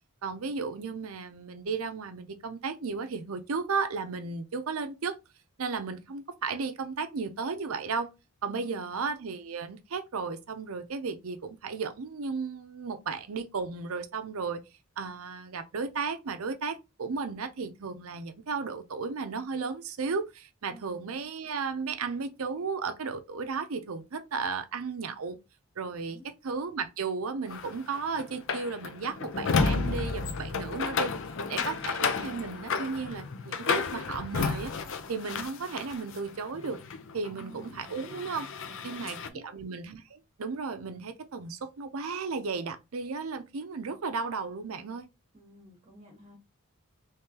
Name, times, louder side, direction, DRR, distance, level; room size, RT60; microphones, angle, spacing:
voice 1, 0.2-5.2 5.6-8.1 8.4-14.6 15.0-25.4 25.8-31.1 31.5-34.7 35.1-36.8 37.1-38.5 38.8-45.1, right 4 dB, 75° right, 0.6 m, -34 dB
voice 2, 8.5-8.8 20.7-20.9 26.0-26.2 31.5-31.7 37.2-38.0 38.7-39.5 45.3-46.4, right 1 dB, 30° right, 1.2 m, -50 dB
sound 1, 27.5-36.2 36.5-39.3, left 4 dB, 60° left, 0.5 m, -32 dB
3.7 x 3.3 x 2.8 m
head